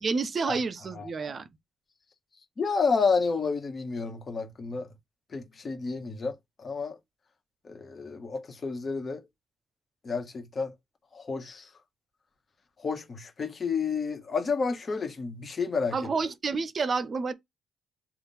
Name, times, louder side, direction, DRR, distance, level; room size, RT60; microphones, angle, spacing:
voice 1, 0.0-1.5 15.9-17.3, right 4 dB, 40° right, 0.6 m, -29 dB
voice 2, 2.6-4.9 5.3-7.0 7.6-9.2 10.0-10.7 11.1-11.7 12.8-16.0, left 5 dB, 40° left, 1.3 m, -30 dB
3.6 x 2.5 x 4.2 m
cardioid pair, 90°, 0 cm